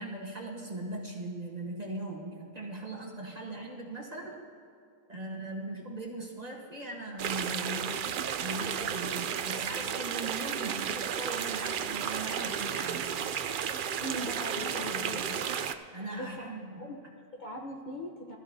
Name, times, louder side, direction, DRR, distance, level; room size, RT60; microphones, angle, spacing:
voice 1, 0.0-4.4 5.1-8.0 8.4-13.1 14.9-15.4 15.9-16.9, right 2 dB, 30° right, -1 dB, 1.3 m, -39 dB
sound 1, 7.2-15.7, right 8 dB, 90° right, 0.4 m, -33 dB
voice 2, 14.0-15.5 16.1-16.5 16.8-18.4, equal, 35° left, -1 dB, 1.0 m, -40 dB
19.5 x 13.0 x 2.7 m, 2.4 s
omnidirectional pair, 1.5 m